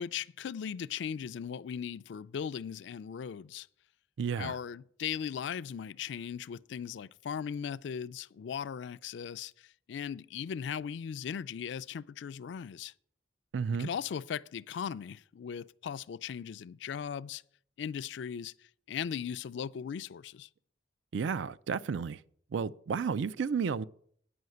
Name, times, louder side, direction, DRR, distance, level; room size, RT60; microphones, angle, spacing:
voice 1, 0.0-3.7 4.4-12.9 13.8-17.4 17.8-18.5 18.9-20.5, left 7 dB, 70° left, 0.3 m, -38 dB
voice 2, 4.2-4.5 13.5-13.9 21.1-22.2 22.5-23.8, right 6 dB, 75° right, 0.4 m, -32 dB
9.5 x 5.6 x 7.8 m
head